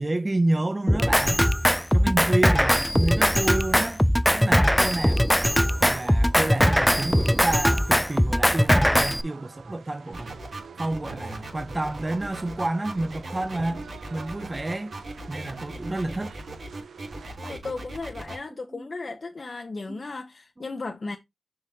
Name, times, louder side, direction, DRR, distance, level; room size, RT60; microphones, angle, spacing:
voice 1, 0.0-1.4 1.9-4.0 4.3-5.3 5.8-10.4 10.8-13.8 14.1-14.9 15.3-16.3 18.7-18.9 19.9-20.0 20.6-20.7, right 2 dB, 30° right, 0.7 m, -29 dB
Drum kit, 0.9-9.2, equal, 5° left, 0.4 m, -20 dB
sound 1, 4.2-17.4, right 5 dB, 90° right, 0.7 m, -46 dB
sound 2, 10.1-18.4, right 2 dB, 70° right, 3.2 m, -38 dB
voice 2, 17.4-21.2, left 3 dB, 55° left, 0.8 m, -35 dB
6.5 x 5.8 x 2.8 m
cardioid pair, 45°, 0 cm